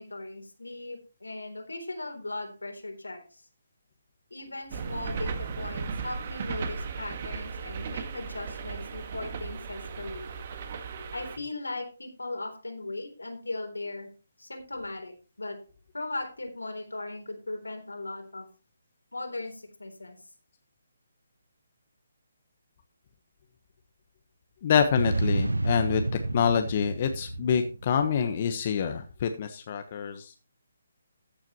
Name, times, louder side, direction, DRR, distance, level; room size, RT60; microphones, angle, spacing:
voice 1, 0.0-3.4 4.3-10.3 11.1-14.1 14.4-15.6 15.9-18.5 19.1-20.2, left 2 dB, 85° left, 5 dB, 3.7 m, -38 dB
sound 1, 4.7-11.4, right 5 dB, 45° right, 1.7 m, -36 dB
voice 2, 24.6-26.0 26.3-30.3, left 7 dB, 40° left, 7 dB, 1.2 m, -26 dB
sound 2, 25.0-28.5, right 2 dB, 85° right, 0.8 m, -30 dB
14.5 x 8.9 x 3.0 m, 0.34 s
figure-of-eight pair, 145°, 0 cm